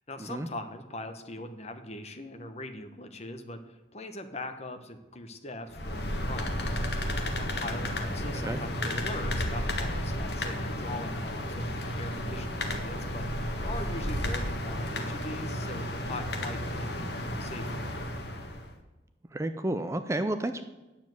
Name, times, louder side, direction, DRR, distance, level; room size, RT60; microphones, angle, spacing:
voice 1, 0.1-6.8 7.4-11.7 12.0-13.3 13.6-17.8, left 1 dB, 35° left, 8 dB, 1.0 m, -41 dB
sound 1, 5.7-18.7, left 1 dB, 60° left, 1.5 m, -32 dB
voice 2, 19.3-20.6, right 1 dB, 15° right, 9 dB, 0.5 m, -31 dB
9.5 x 7.2 x 7.8 m, 1.1 s
head